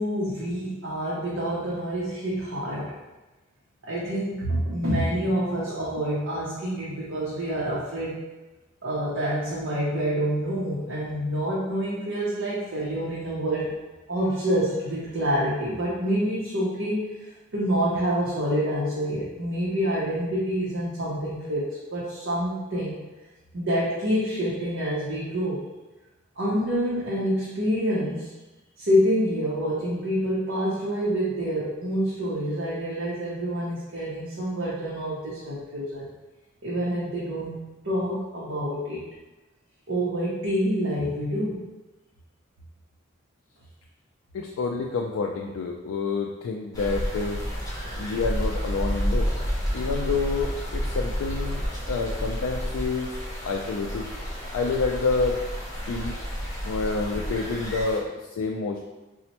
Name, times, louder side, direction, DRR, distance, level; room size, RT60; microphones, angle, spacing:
voice 1, 0.0-2.9 3.8-8.2 8.8-13.7 14.1-23.0 23.5-25.7 26.4-28.3 28.8-36.1 36.6-39.0 39.9-41.6, equal, 60° right, -7 dB, 0.6 m, -27 dB
voice 2, 44.3-47.4 48.0-49.3 49.7-51.6 51.9-53.1 53.4-54.1 54.5-55.4 55.9-56.2 56.6-58.8, left 4 dB, 85° left, 1 dB, 0.3 m, -28 dB
sound 1, 46.7-58.0, equal, 15° left, 0.6 m, -30 dB
4.1 x 2.1 x 2.8 m, 1.1 s
head